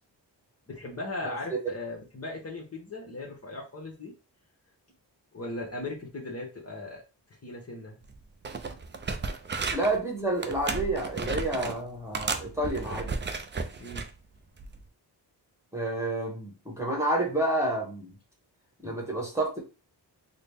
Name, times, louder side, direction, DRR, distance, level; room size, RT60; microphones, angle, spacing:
voice 1, 0.7-4.1 5.3-7.0 7.3-8.0 13.8-14.0 18.8-18.9, left 2 dB, 35° left, -2 dB, 1.0 m, -38 dB
sound 1, 8.0-8.2 8.4-10.0 10.4-11.8 12.1-14.1 14.6-14.8, right 4 dB, 25° right, 0.4 m, -33 dB
voice 2, 9.7-13.2 15.7-18.1 18.8-19.6, right 1 dB, 5° right, -1 dB, 1.3 m, -29 dB
3.9 x 2.1 x 3.4 m, 0.32 s
wide cardioid pair, 85°, 44 cm